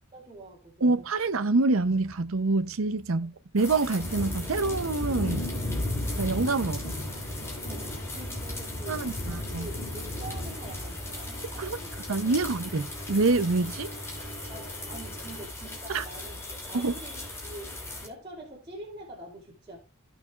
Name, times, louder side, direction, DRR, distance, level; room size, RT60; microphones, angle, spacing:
voice 1, 0.1-1.1 7.7-11.9 12.2-12.5 14.5-19.8, right 1 dB, 25° right, 2.9 m, -45 dB
voice 2, 0.8-5.4 6.2-6.9 8.9-9.7 11.6-11.8 12.1-13.9 15.9-16.0 16.7-16.9, right 3 dB, 80° right, 0.7 m, -26 dB
sound 1, 1.7-10.9, equal, 30° left, 3.8 m, -56 dB
sound 2, 3.6-18.1, left 1 dB, 15° left, 2.8 m, -36 dB
Engine, 6.0-15.4, equal, 55° left, 3.0 m, -43 dB
16.0 x 6.1 x 2.4 m
head